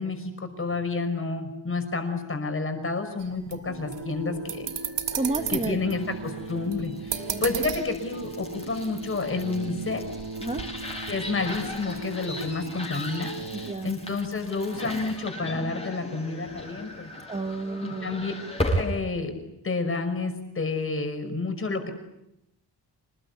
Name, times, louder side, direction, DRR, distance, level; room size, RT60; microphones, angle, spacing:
voice 1, 0.0-4.7 5.5-10.0 11.1-13.3 13.8-17.1 17.8-18.3 18.8-19.3 19.6-21.9, left 3 dB, 30° left, 6 dB, 5.8 m, -30 dB
sound 1, 3.2-9.0 9.3-9.5 9.9-12.0, right 8 dB, 85° right, 2.3 m, -35 dB
sound 2, 3.7-13.7, right 3 dB, 55° right, 2.3 m, -39 dB
voice 2, 5.1-5.8 7.2-7.4 10.4-10.7 13.5-13.9 17.3-18.2, right 3 dB, 15° right, 5 dB, 1.2 m, -31 dB
sound 3, 5.4-19.0, left 1 dB, 15° left, 6.9 m, -36 dB
27.0 x 20.5 x 9.7 m, 0.85 s
wide cardioid pair, 165°, 42 cm